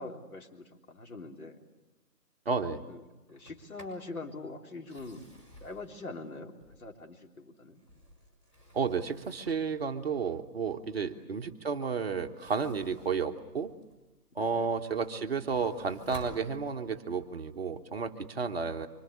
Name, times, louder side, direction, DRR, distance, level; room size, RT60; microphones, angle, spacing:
voice 1, 0.0-1.6 2.9-3.0 3.3-5.3 5.6-7.8 11.0-11.2 14.3-14.7, left 3 dB, 60° left, 2 dB, 3.6 m, -43 dB
voice 2, 2.4-2.8 8.7-13.7 14.3-18.9, right 5 dB, 40° right, 6 dB, 1.2 m, -32 dB
Sliding door, 3.3-4.1 4.7-7.1 7.6-9.8 12.2-14.1 14.6-17.1, equal, 10° left, 5.1 m, -53 dB
25.5 x 25.5 x 8.5 m, 1.1 s
hypercardioid pair, 160°, 48 cm